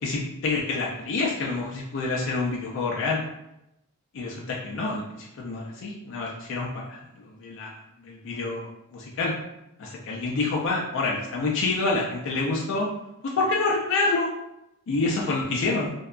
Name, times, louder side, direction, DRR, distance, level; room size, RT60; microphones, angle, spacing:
voice 1, 0.0-3.2 4.1-7.0 7.2-7.7 8.0-9.3 9.8-12.9 13.2-14.3 14.9-15.9, left 3 dB, 60° left, -3 dB, 0.4 m, -27 dB
2.7 x 2.2 x 2.3 m, 0.86 s
head